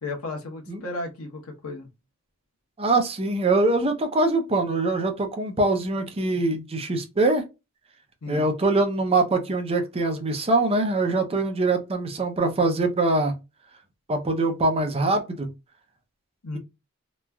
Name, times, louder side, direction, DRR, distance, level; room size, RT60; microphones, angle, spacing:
voice 1, 0.0-1.9 8.2-8.5 16.4-16.6, left 2 dB, 85° left, 0.9 m, -34 dB
voice 2, 2.8-7.4 8.3-13.3 14.1-15.5, right 2 dB, 30° right, 0.5 m, -23 dB
3.0 x 2.3 x 2.2 m
head